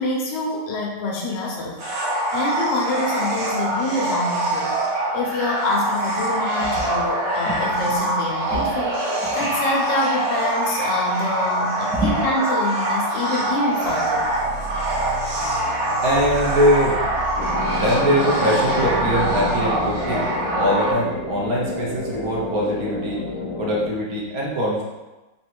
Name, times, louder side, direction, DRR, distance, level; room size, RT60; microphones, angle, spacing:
voice 1, 0.0-1.8 2.3-4.8 5.1-9.0 9.3-14.3, left 2 dB, 90° left, -2 dB, 1.6 m, -26 dB
sound 1, 1.8-20.9, right 1 dB, 80° right, 1.7 m, -24 dB
sound 2, 13.8-22.9, right 2 dB, 25° left, 0.9 m, -35 dB
voice 2, 16.0-17.1 17.7-20.3 20.5-23.2 23.6-24.8, equal, 60° right, -4 dB, 1.2 m, -22 dB
sound 3, 17.4-23.9, left 3 dB, 65° left, 1.3 m, -30 dB
4.0 x 2.5 x 4.3 m, 1.1 s
omnidirectional pair, 1.9 m